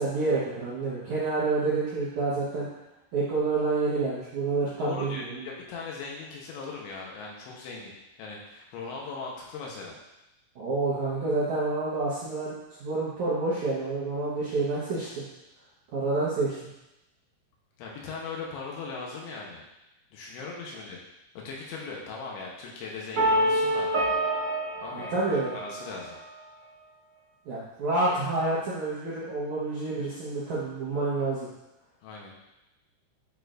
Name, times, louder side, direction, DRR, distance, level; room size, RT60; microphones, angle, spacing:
voice 1, 0.0-2.7 3.1-5.5 10.6-12.5 12.8-15.2 15.9-16.6 24.9-25.5 27.5-31.5, right 3 dB, 70° right, -10 dB, 1.8 m, -28 dB
voice 2, 4.8-10.0 17.8-19.6 20.1-21.0 21.3-23.9 24.8-25.1 25.5-26.2 32.0-32.3, left 4 dB, 80° left, -2 dB, 3.3 m, -39 dB
sound 1, 23.2-26.1, right 1 dB, 45° right, 1.9 m, -27 dB
9.4 x 4.3 x 2.6 m, 0.94 s
omnidirectional pair, 5.2 m